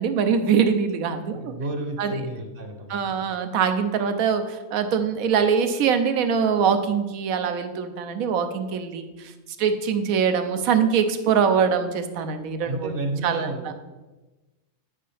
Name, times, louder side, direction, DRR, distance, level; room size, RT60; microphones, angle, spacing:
voice 1, 0.0-1.5 2.0-2.2 2.9-9.3 9.6-12.9 13.2-13.7, right 6 dB, 85° right, 8 dB, 1.1 m, -23 dB
voice 2, 1.3-3.3 12.6-13.7, right 2 dB, 50° right, 4 dB, 0.9 m, -32 dB
9.5 x 5.4 x 3.3 m, 1.1 s
omnidirectional pair, 1.4 m